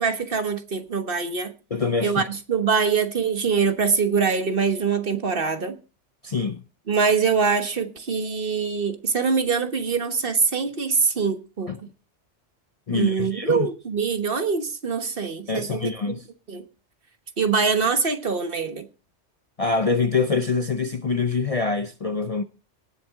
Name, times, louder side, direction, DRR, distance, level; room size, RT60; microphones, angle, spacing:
voice 1, 0.0-1.5 2.0-5.8 6.9-11.9 12.9-15.9 16.5-16.6 17.4-18.9, right 5 dB, 50° right, 1.4 m, -24 dB
voice 2, 1.7-2.2 6.2-6.6 11.7-11.8 12.9-13.7 15.5-16.2 19.6-22.4, left 4 dB, 40° left, 0.6 m, -25 dB
18.5 x 7.6 x 3.6 m
omnidirectional pair, 1.2 m